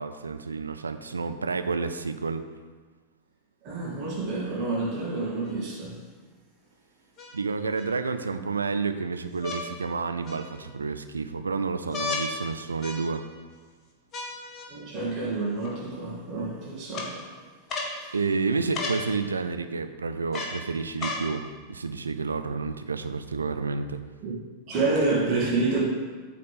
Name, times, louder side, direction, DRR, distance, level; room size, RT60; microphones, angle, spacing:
voice 1, 0.0-2.4 7.3-13.2 18.1-24.0, right 4 dB, 75° right, 0.5 m, -30 dB
voice 2, 3.6-6.0 14.7-17.3 18.0-18.1 24.2-24.4 24.7-25.8, right 3 dB, 40° right, 2.3 m, -28 dB
sound 1, 5.4-5.5 7.2-7.9 9.4-9.6 10.3-10.8 11.9-12.3 12.8-13.4 14.1-14.7 15.6-15.7 16.9-17.1 17.7-17.9 18.7-19.0 20.3-20.6 21.0-21.3 22.1-22.2, left 3 dB, 30° left, 1.6 m, -34 dB
8.5 x 4.2 x 6.7 m
figure-of-eight pair, 90°, 0 cm